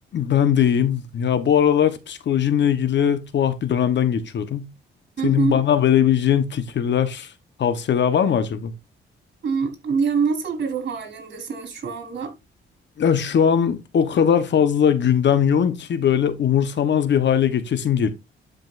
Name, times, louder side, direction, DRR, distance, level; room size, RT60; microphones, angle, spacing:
voice 1, 0.1-4.7 5.2-7.3 7.6-8.7 13.0-18.1, left 8 dB, 65° left, 1.1 m, -20 dB
voice 2, 5.2-5.6 9.4-12.3, right 5 dB, 60° right, 4.0 m, -25 dB
12.0 x 5.2 x 2.5 m
cardioid pair, 100°, 20 cm